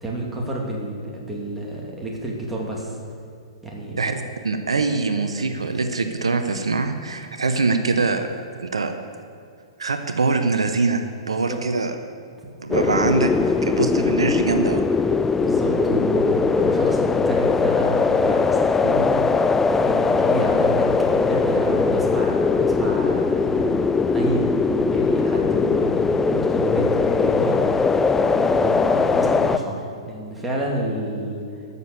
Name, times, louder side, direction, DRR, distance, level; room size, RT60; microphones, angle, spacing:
voice 1, 0.0-3.0 3.6-4.0 11.2-11.6 15.4-28.0 28.3-31.5, right 1 dB, 5° right, -3 dB, 2.4 m, -30 dB
voice 2, 4.0-8.9 9.8-11.9 12.6-13.3 13.6-14.9, right 3 dB, 75° right, 8 dB, 0.8 m, -23 dB
sound 1, 12.7-29.6, left 4 dB, 10° left, 0.4 m, -20 dB
13.5 x 7.0 x 6.7 m, 2.4 s
figure-of-eight pair, 110°, 3 cm